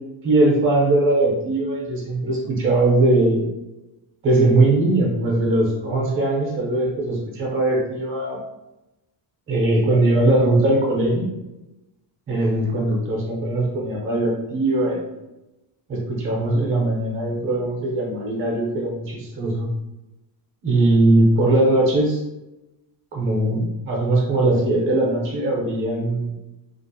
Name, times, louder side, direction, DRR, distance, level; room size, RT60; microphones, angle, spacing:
voice 1, 0.2-3.5 4.2-8.4 9.5-11.3 12.3-15.0 15.9-19.7 20.6-22.2 23.1-26.3, right 2 dB, 25° right, -3 dB, 0.6 m, -20 dB
2.5 x 2.0 x 2.6 m, 0.96 s
cardioid pair, 170°, 47 cm